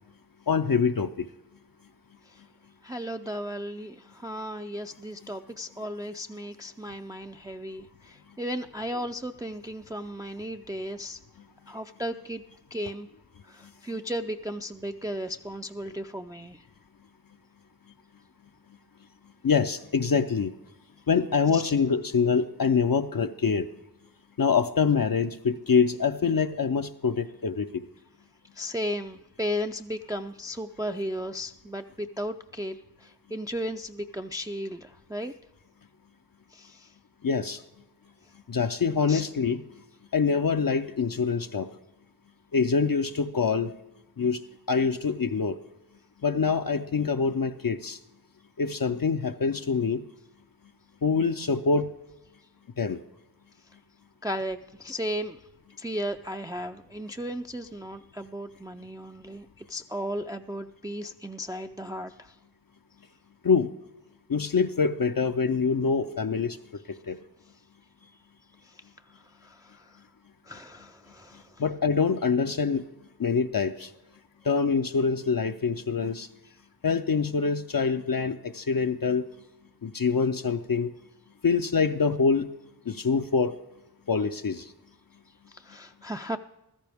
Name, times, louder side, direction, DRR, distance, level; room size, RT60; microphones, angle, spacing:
voice 1, 0.5-1.1 19.4-20.5 21.1-23.7 24.4-27.8 37.2-37.6 38.5-39.6 40.1-41.7 42.5-43.7 44.2-44.4 44.7-45.6 46.2-48.0 48.6-50.0 51.0-51.9 52.8-53.0 63.4-63.7 64.3-66.6 67.1-67.2 71.6-72.8 73.2-73.9 74.5-76.3 76.8-79.2 79.8-80.9 81.4-82.5 82.9-83.6 84.1-84.7, left 5 dB, 60° left, 7 dB, 0.5 m, -25 dB
voice 2, 2.8-11.2 11.7-12.4 12.7-13.1 13.4-16.6 21.5-21.7 28.5-35.3 36.5-36.9 39.1-39.2 54.2-55.4 55.8-62.3 68.6-68.8 69.4-70.0 70.4-71.6 85.5-86.4, equal, 10° right, 6 dB, 0.4 m, -35 dB
15.5 x 13.0 x 3.5 m, 0.92 s
wide cardioid pair, 40°, 39 cm